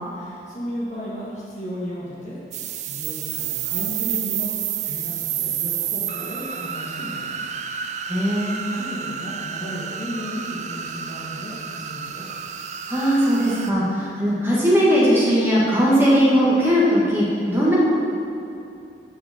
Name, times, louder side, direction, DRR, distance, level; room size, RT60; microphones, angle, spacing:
voice 1, 0.1-7.5 8.6-12.2, equal, 40° left, -7 dB, 2.0 m, -34 dB
sound 1, 2.5-13.7, right 9 dB, 40° right, 0.3 m, -30 dB
voice 2, 8.1-8.6 12.9-17.8, equal, 15° right, -7 dB, 1.7 m, -19 dB
11.5 x 4.9 x 4.3 m, 2.6 s
head